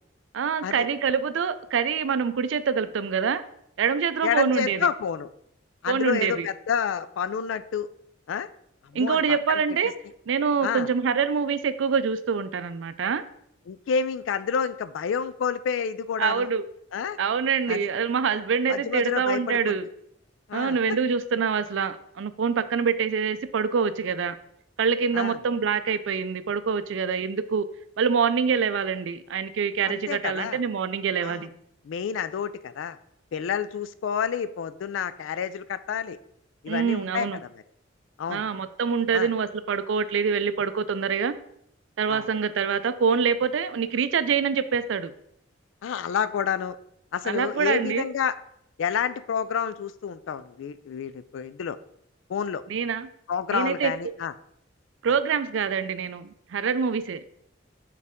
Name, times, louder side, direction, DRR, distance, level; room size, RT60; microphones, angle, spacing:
voice 1, 0.3-3.4 3.8-4.9 5.9-6.5 8.9-9.9 10.3-13.2 16.2-16.7 17.2-19.8 20.5-24.4 24.8-27.7 28.0-31.5 36.7-37.4 38.3-41.3 42.0-45.1 47.2-48.1 52.7-53.1 53.5-53.9 55.0-57.2, right 6 dB, 70° right, 13 dB, 0.4 m, -25 dB
voice 2, 4.2-5.3 5.8-7.9 8.3-8.5 8.9-9.6 10.6-10.9 13.7-16.5 16.9-17.2 17.7-17.9 18.7-19.9 20.5-20.8 25.1-25.4 29.9-30.6 31.2-31.5 31.8-33.0 33.3-36.2 36.6-37.3 37.5-37.6 38.2-38.5 39.1-39.3 42.1-42.3 45.8-46.8 47.1-48.4 48.8-51.8 52.3-52.6 53.3-54.3, left 7 dB, 75° left, 14 dB, 0.3 m, -29 dB
6.5 x 4.1 x 3.5 m, 0.73 s
head